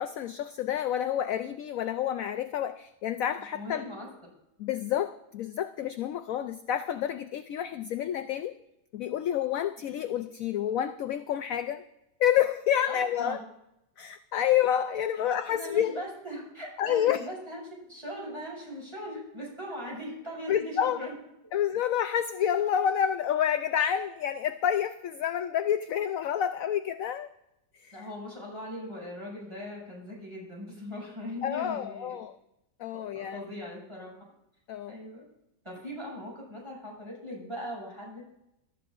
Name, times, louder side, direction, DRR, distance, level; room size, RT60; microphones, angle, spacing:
voice 1, 0.0-3.8 4.6-8.5 8.9-11.8 12.2-13.4 14.0-15.9 16.8-17.2 20.5-21.0 21.5-27.3 27.8-28.0 31.4-32.3 32.8-33.4 34.7-35.0, left 10 dB, 65° left, 9 dB, 0.8 m, -29 dB
voice 2, 3.4-4.1 12.9-13.4 15.1-15.2 15.6-21.2 27.9-32.2 33.1-34.3 34.9-35.2 35.6-38.2, left 1 dB, 15° right, -4 dB, 6.8 m, -40 dB
25.0 x 13.0 x 2.5 m, 0.86 s
omnidirectional pair, 1.9 m